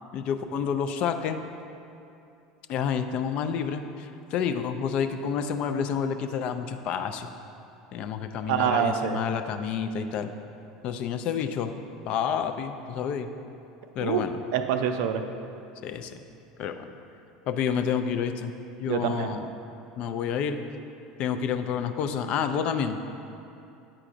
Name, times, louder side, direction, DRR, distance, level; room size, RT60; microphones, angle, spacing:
voice 1, 0.1-1.4 2.7-7.3 7.9-10.3 10.8-11.7 12.1-13.3 14.0-14.4 15.8-16.2 16.6-16.9 17.5-18.5 18.8-19.5 20.0-20.6 21.2-23.0, left 7 dB, 50° left, 8 dB, 0.4 m, -29 dB
voice 2, 8.5-9.2 14.0-14.2 14.5-15.2 18.8-19.4, right 8 dB, 65° right, 7 dB, 0.4 m, -26 dB
8.8 x 4.8 x 2.5 m, 2.7 s
hypercardioid pair, 80°, 2 cm